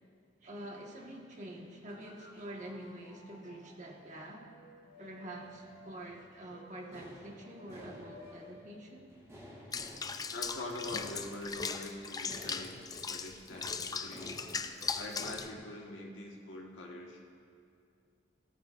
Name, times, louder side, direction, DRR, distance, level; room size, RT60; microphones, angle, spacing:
voice 1, 0.4-4.5 5.0-9.1, right 1 dB, 40° right, -1 dB, 1.5 m, -46 dB
sound 1, 1.9-5.9 6.4-8.5 8.8-8.9, left 2 dB, 55° left, 2.7 m, -56 dB
sound 2, 5.4-15.4, equal, 15° right, 2.8 m, -54 dB
Water / Bathtub (filling or washing), 9.7-15.5, left 5 dB, 20° left, 0.4 m, -39 dB
voice 2, 10.3-12.8 13.1-14.5 14.9-17.2, left 2 dB, 90° left, -1 dB, 1.4 m, -44 dB
17.5 x 13.5 x 2.5 m, 2.4 s
head